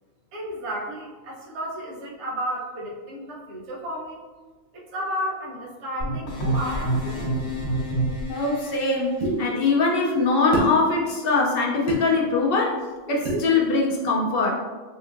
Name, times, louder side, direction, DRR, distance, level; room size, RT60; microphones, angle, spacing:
voice 1, 0.3-4.2 4.7-7.4, equal, 55° right, -5 dB, 1.0 m, -33 dB
sound 1, 6.0-8.7, right 1 dB, 60° left, 1.4 m, -27 dB
voice 2, 8.3-12.8 13.1-14.6, left 3 dB, 80° left, -2 dB, 0.5 m, -22 dB
sound 2, 9.2-9.4 10.5-10.7 11.9-12.0 13.2-13.5, right 1 dB, 85° right, 1.5 m, -25 dB
4.4 x 2.5 x 2.4 m, 1.4 s
omnidirectional pair, 1.5 m